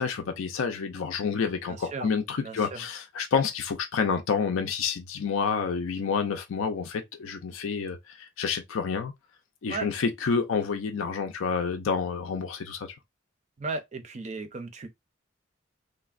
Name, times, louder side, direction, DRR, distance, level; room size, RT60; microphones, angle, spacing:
voice 1, 0.0-9.1 9.6-12.9, left 5 dB, 75° left, 0.4 m, -29 dB
voice 2, 1.7-2.1 2.4-2.8 9.7-9.9 13.6-14.9, right 3 dB, 35° right, 0.5 m, -36 dB
3.3 x 2.1 x 2.4 m
head